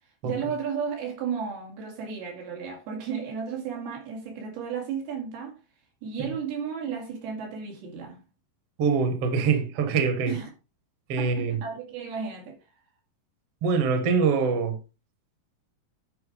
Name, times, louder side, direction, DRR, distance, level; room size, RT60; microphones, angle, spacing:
voice 1, 0.2-5.6 6.0-8.2 10.3-10.5 11.2-12.6, right 6 dB, 90° right, 4.4 m, -33 dB
voice 2, 8.8-10.3 11.1-11.6 13.6-14.8, right 5 dB, 55° right, 1.8 m, -24 dB
10.0 x 4.6 x 5.0 m
omnidirectional pair, 4.3 m